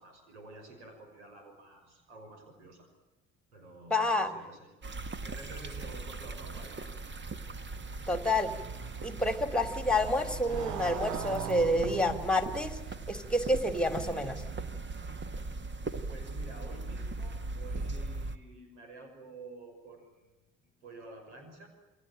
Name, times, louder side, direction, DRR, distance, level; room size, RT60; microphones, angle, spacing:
voice 1, 0.0-2.9 3.5-7.1 16.1-20.3 20.8-21.7, right 2 dB, 80° right, 5 dB, 5.9 m, -50 dB
voice 2, 3.9-4.3 8.1-8.5 9.0-12.8 13.1-14.4, left 1 dB, 5° left, 9 dB, 3.1 m, -28 dB
sound 1, 4.8-18.4, right 3 dB, 30° right, 1.8 m, -39 dB
Motorcycle, 7.6-15.4, right 11 dB, 60° right, 1.1 m, -44 dB
28.5 x 22.0 x 9.0 m, 1.1 s
figure-of-eight pair, 50°, 34 cm